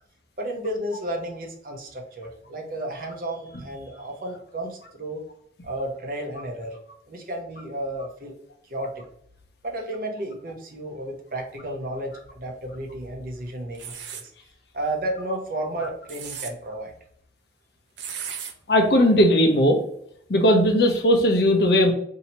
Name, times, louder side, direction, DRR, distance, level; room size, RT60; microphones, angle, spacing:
voice 1, 0.4-5.2 5.6-6.8 7.1-8.4 8.7-9.0 9.6-14.3 14.7-16.9, right 1 dB, 50° right, 1 dB, 0.8 m, -32 dB
sound 1, 13.7-14.3 15.9-16.5 18.0-18.5, right 8 dB, 85° right, 0.5 m, -35 dB
voice 2, 18.7-19.8 20.3-21.9, equal, 65° left, 4 dB, 0.7 m, -18 dB
2.8 x 2.8 x 4.2 m, 0.69 s
head